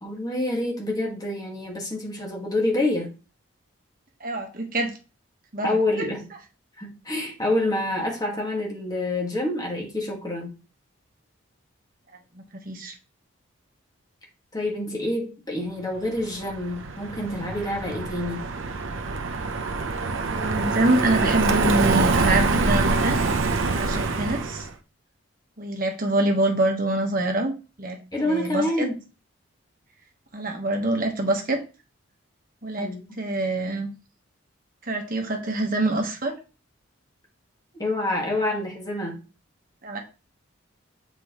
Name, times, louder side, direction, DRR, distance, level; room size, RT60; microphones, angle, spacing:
voice 1, 0.0-3.1 5.6-6.3 6.8-10.5 14.5-18.4 28.1-29.0 32.8-33.1 37.7-39.2, left 1 dB, 20° left, 1.7 m, -27 dB
voice 2, 4.2-4.9 5.5-6.1 12.3-12.9 20.3-23.2 23.8-24.7 25.6-27.5 27.8-28.0 28.2-28.9 30.3-31.6 32.6-33.9 34.8-36.3 39.8-40.0, right 2 dB, 40° right, 1.2 m, -25 dB
Car passing by, 16.2-24.7, right 3 dB, 65° right, 0.7 m, -25 dB
7.7 x 4.6 x 3.0 m
head